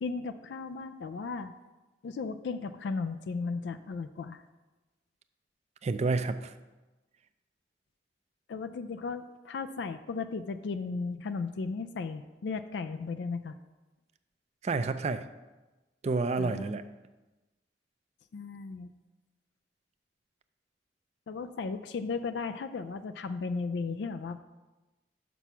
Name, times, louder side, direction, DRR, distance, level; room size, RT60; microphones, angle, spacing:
voice 1, 0.0-1.5 2.0-4.4 8.5-13.5 16.4-16.7 18.3-18.9 21.3-24.4, left 4 dB, 70° left, 10 dB, 0.4 m, -35 dB
voice 2, 5.8-6.5 14.6-15.3 16.0-16.9, right 3 dB, 40° right, 10 dB, 0.4 m, -29 dB
6.1 x 6.0 x 5.6 m, 1.1 s
head